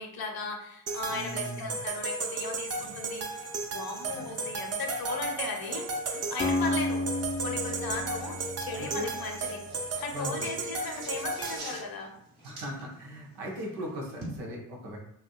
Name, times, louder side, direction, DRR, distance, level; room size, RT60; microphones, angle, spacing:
voice 1, 0.0-6.0 6.3-9.6 10.0-12.1, left 3 dB, 50° left, 2 dB, 0.9 m, -37 dB
sound 1, 0.9-11.6, right 3 dB, 35° right, 0.6 m, -35 dB
voice 2, 1.1-1.8 2.7-3.0 4.0-4.5 8.7-9.1 10.1-10.5 12.4-15.0, equal, 90° right, -1 dB, 0.8 m, -39 dB
sound 2, 2.7-14.4, right 1 dB, 70° right, 1.5 m, -48 dB
Acoustic guitar, 6.4-10.5, left 2 dB, 20° left, 0.4 m, -33 dB
3.3 x 2.6 x 2.3 m, 0.71 s
hypercardioid pair, 50°, 45 cm